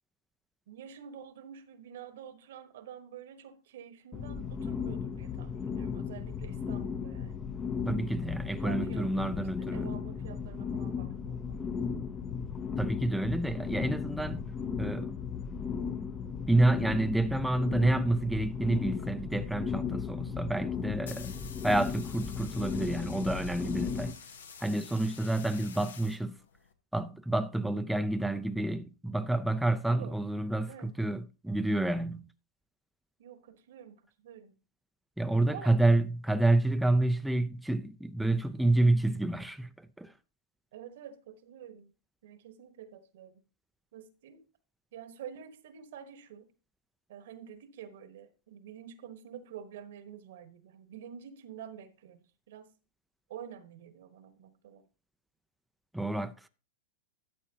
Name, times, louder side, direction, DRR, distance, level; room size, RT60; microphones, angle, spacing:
voice 1, 0.7-7.4 8.6-11.6 29.9-30.2 30.7-30.9 33.2-34.5 35.4-35.7 40.7-41.9 42.2-43.4 43.9-44.4 44.9-46.5 47.1-52.7 53.3-54.8, right 8 dB, 65° right, 1.2 m, -48 dB
sound 1, 4.1-24.1, left 6 dB, 25° left, 0.7 m, -36 dB
voice 2, 7.9-9.9 12.8-14.4 14.8-15.1 16.5-21.3 21.6-24.2 24.6-26.4 26.9-32.3 35.2-40.1 55.9-56.5, right 2 dB, 5° right, 0.5 m, -29 dB
sound 2, 20.7-26.7, left 6 dB, 80° left, 0.9 m, -49 dB
12.5 x 7.3 x 2.9 m
hypercardioid pair, 105°, 0 cm